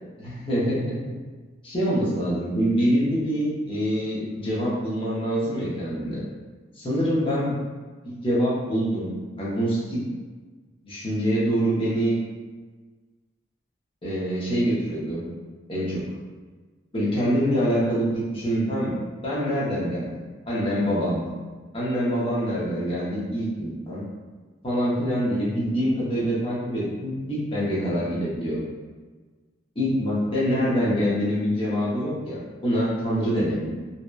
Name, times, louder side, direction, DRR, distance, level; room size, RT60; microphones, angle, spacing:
voice 1, 0.2-0.9 1.6-6.2 6.8-7.5 8.0-9.1 9.4-10.0 10.8-12.2 14.0-15.2 15.7-16.0 16.9-18.9 19.2-20.1 20.5-21.2 21.7-24.0 24.6-28.6 29.8-33.7, equal, 30° left, -8 dB, 0.7 m, -25 dB
2.7 x 2.1 x 2.2 m, 1.4 s
head